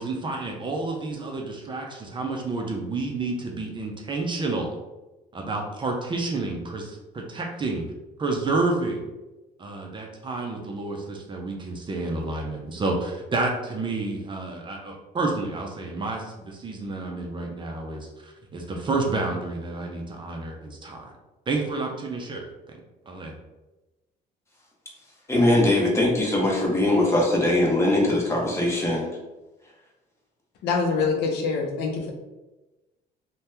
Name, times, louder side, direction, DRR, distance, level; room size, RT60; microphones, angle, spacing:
voice 1, 0.0-4.8 5.3-7.9 8.2-9.0 9.6-21.1 21.5-22.4 23.1-23.4, right 3 dB, 30° right, 1 dB, 0.5 m, -30 dB
voice 2, 25.3-29.1, left 1 dB, 15° left, -3 dB, 0.9 m, -21 dB
voice 3, 30.6-31.9, left 4 dB, 80° left, 1 dB, 0.6 m, -24 dB
2.7 x 2.2 x 3.3 m, 1.1 s
cardioid pair, 110°, 17 cm